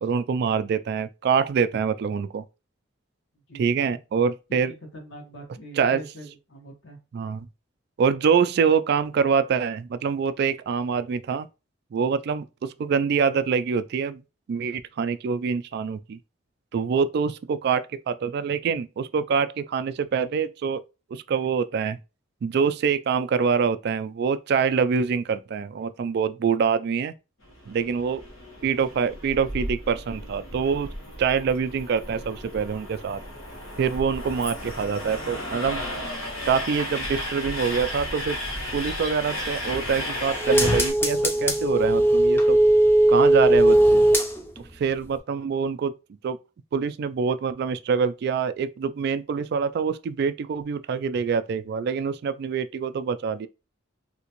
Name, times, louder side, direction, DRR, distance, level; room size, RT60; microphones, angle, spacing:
voice 1, 0.0-2.4 3.5-4.7 5.7-6.0 7.1-7.4 8.0-11.5 11.9-14.2 14.5-16.2 16.7-20.8 21.1-22.0 22.4-27.1 27.7-28.2 28.6-30.9 31.2-33.2 33.8-35.8 36.5-38.4 38.7-42.6 43.1-44.0 44.8-45.9 46.2-46.4 46.7-53.5, right 6 dB, 55° right, 0.3 m, -25 dB
voice 2, 3.5-3.9 4.7-7.0 8.4-8.5, right 1 dB, 65° left, 1.3 m, -43 dB
Train, 27.4-40.9, left 1 dB, 90° left, 1.4 m, -34 dB
sound 1, 39.6-44.7 45.1-45.2, right 1 dB, 10° left, 0.6 m, -19 dB
3.4 x 2.8 x 2.9 m
head